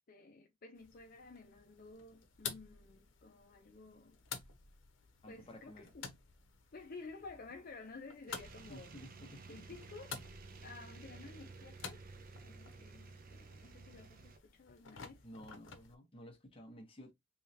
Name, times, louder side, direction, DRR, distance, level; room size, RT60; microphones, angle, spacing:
voice 1, 0.1-4.2 5.3-6.1 6.7-8.9 9.5-12.0 12.4-15.3, left 3 dB, 50° left, 0.6 m, -53 dB
sound 1, 0.7-16.0, left 6 dB, 90° left, 0.8 m, -52 dB
voice 2, 5.2-5.9 8.7-9.7 15.2-17.1, equal, 30° left, 1.0 m, -53 dB
sound 2, 8.3-14.4, right 3 dB, 50° right, 0.5 m, -53 dB
3.4 x 3.1 x 2.8 m
head